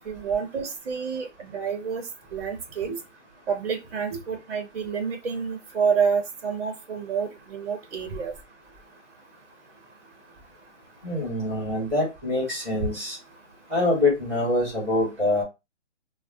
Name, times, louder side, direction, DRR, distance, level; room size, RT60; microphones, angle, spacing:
voice 1, 0.1-2.1 2.3-2.9 3.5-8.3, right 6 dB, 55° right, 5 dB, 0.7 m, -28 dB
voice 2, 11.0-13.2 13.7-15.4, left 2 dB, 5° right, -11 dB, 0.9 m, -25 dB
3.5 x 2.0 x 2.5 m, 0.24 s
hypercardioid pair, 165°, 36 cm